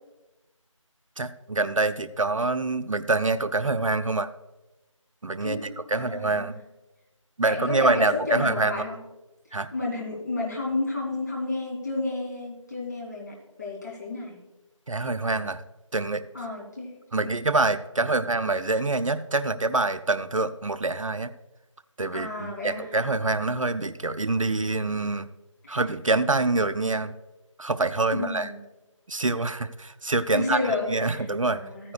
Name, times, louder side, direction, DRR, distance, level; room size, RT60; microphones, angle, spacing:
voice 1, 1.2-4.3 5.2-6.5 7.4-8.7 9.5-9.7 14.9-15.6 15.9-16.2 17.1-21.3 22.0-25.3 25.7-27.1 27.6-28.5 29.1-31.6, right 3 dB, 75° right, 12 dB, 0.5 m, -26 dB
voice 2, 5.4-6.6 7.4-9.0 9.7-14.4 16.3-17.4 22.1-22.8 25.6-25.8 28.1-28.6 30.3-31.3 31.5-31.9, left 3 dB, 30° left, -3 dB, 2.6 m, -31 dB
14.5 x 9.8 x 2.3 m, 1.0 s
figure-of-eight pair, 170°, 17 cm